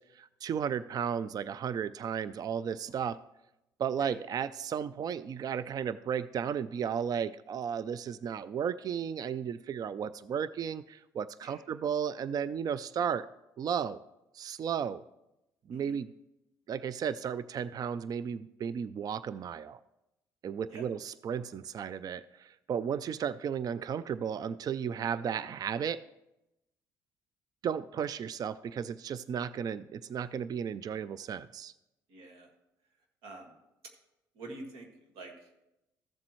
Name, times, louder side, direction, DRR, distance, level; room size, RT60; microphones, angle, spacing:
voice 1, 0.1-3.2 3.8-13.3 13.6-14.0 14.3-15.0 15.7-16.1 16.7-19.8 20.4-26.0 27.6-31.7, right 7 dB, 45° right, 16 dB, 0.4 m, -34 dB
voice 2, 32.1-32.5 33.2-33.5 34.3-35.6, right 2 dB, 80° right, 2 dB, 1.9 m, -47 dB
14.0 x 7.4 x 3.1 m, 0.89 s
supercardioid pair, 70°, 9 cm